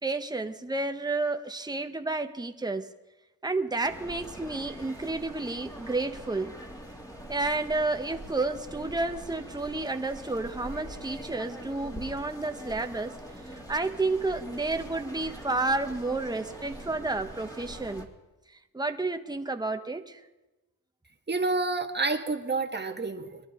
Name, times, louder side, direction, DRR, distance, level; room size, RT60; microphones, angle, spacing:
voice 1, 0.0-2.9 3.4-6.5 7.3-13.1 13.5-18.1 18.7-20.2, right 3 dB, 10° right, 6 dB, 1.2 m, -31 dB
sound 1, 3.8-18.1, equal, 10° left, 2.6 m, -43 dB
voice 2, 21.3-23.4, right 3 dB, 25° right, 3 dB, 1.8 m, -29 dB
23.0 x 11.0 x 3.7 m, 1.1 s
supercardioid pair, 55°, 38 cm